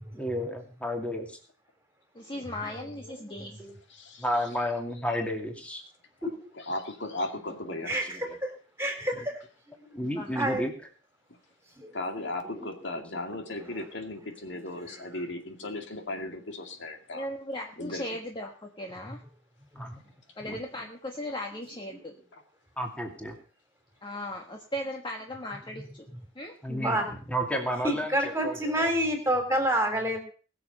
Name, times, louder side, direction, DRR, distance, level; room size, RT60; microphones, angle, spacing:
voice 1, 0.1-1.4 2.6-3.7 4.2-5.8 7.7-7.8 8.0-8.4 9.9-10.9 12.2-12.6 13.3-13.8 14.5-15.1 15.6-15.7 19.7-20.0 20.5-20.9 22.8-23.4 26.6-28.9, equal, 5° left, 2 dB, 2.5 m, -33 dB
voice 2, 2.1-3.6 10.2-10.3 17.1-19.2 20.4-22.1 24.0-26.1 26.3-26.5, left 1 dB, 25° left, 2 dB, 1.4 m, -37 dB
voice 3, 3.9-4.2 6.2-8.0 11.9-17.3 17.8-18.0, left 2 dB, 65° left, 4 dB, 2.3 m, -36 dB
voice 4, 7.9-8.5 8.8-9.3 9.8-10.0 10.4-10.7 11.8-12.0 12.2-12.3 19.7-19.9 26.7-27.1 27.8-30.2, right 1 dB, 15° right, 4 dB, 3.6 m, -28 dB
20.5 x 7.0 x 5.6 m, 0.39 s
head